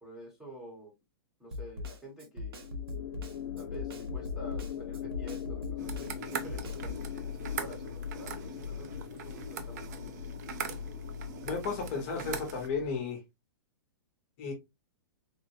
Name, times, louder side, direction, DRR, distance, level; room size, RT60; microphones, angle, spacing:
voice 1, 0.0-0.9 1.4-2.8 3.5-10.2, right 1 dB, 5° right, 1.0 m, -49 dB
Snare drum, 1.5-7.0, left 3 dB, 65° right, 0.9 m, -40 dB
sound 1, 2.6-13.0, left 8 dB, 70° left, 0.6 m, -40 dB
sound 2, 5.8-12.7, right 7 dB, 40° right, 0.5 m, -42 dB
voice 2, 11.4-13.2 14.4-14.5, left 5 dB, 30° left, 0.9 m, -33 dB
3.6 x 2.2 x 2.8 m
hypercardioid pair, 160°, 13 cm